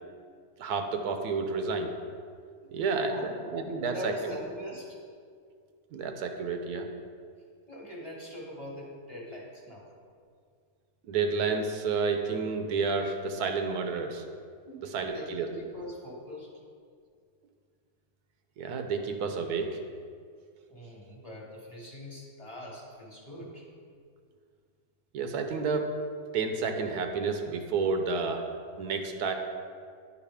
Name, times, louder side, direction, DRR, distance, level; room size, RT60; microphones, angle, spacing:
voice 1, 0.6-1.9 2.7-4.3 5.9-6.9 11.1-14.2 14.9-15.5 18.6-19.8 25.1-25.9 26.3-28.4 28.8-29.3, right 4 dB, 85° right, 5 dB, 1.2 m, -30 dB
voice 2, 2.6-3.5 3.8-5.0 7.7-9.9 14.7-16.5 20.7-23.7, equal, 25° left, -4 dB, 1.3 m, -43 dB
10.5 x 4.8 x 3.5 m, 2.1 s
omnidirectional pair, 1.6 m